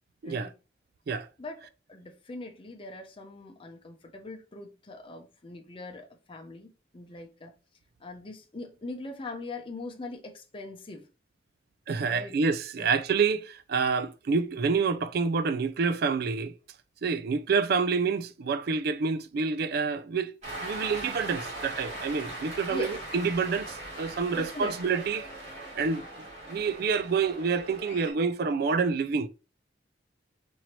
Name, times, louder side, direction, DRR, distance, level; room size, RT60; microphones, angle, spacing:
voice 1, 0.2-0.5 1.4-1.6 1.9-7.5 8.0-11.1 12.1-12.3 12.8-12.9 22.7-23.0 24.3-24.8, left 2 dB, 30° left, 0.6 m, -41 dB
voice 2, 11.9-16.5 17.0-20.3 20.6-25.3 25.7-26.0 26.5-29.3, right 5 dB, 60° right, 0.4 m, -28 dB
Cheering, 20.4-28.1, right 1 dB, 40° right, 2.3 m, -40 dB
4.3 x 2.7 x 3.0 m
head